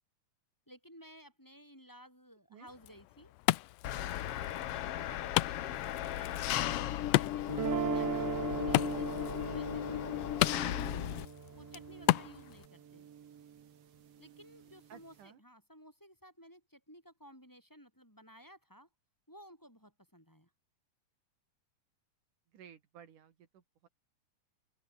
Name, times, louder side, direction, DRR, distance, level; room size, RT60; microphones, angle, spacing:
voice 1, 0.7-3.3 4.3-6.7 7.1-8.4 8.7-10.4 11.5-13.1 14.2-18.9 19.3-20.5, equal, 5° left, 6.7 m, -56 dB
Wood, 2.7-12.7, left 18 dB, 85° left, 1.5 m, -35 dB
Engine, 3.8-11.3, left 12 dB, 65° left, 1.5 m, -36 dB
sound 1, 7.5-13.6, right 8 dB, 55° right, 2.7 m, -38 dB
voice 2, 14.9-15.4 22.5-23.9, right 8 dB, 75° right, 3.7 m, -56 dB
open air
omnidirectional pair, 3.6 m